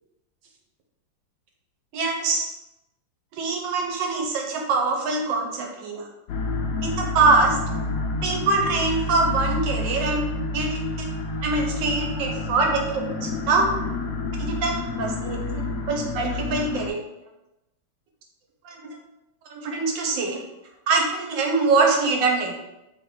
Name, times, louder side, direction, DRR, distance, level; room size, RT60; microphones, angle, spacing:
voice 1, 1.9-2.5 3.3-6.1 6.8-7.6 8.2-10.2 10.5-10.8 11.4-12.9 13.2-13.7 14.5-17.0 18.6-18.8 19.4-20.4 20.9-22.5, right 3 dB, 80° right, 1 dB, 1.5 m, -23 dB
sound 1, 6.3-16.9, left 3 dB, 90° left, 0.7 m, -29 dB
3.6 x 2.9 x 3.8 m, 0.92 s
omnidirectional pair, 2.1 m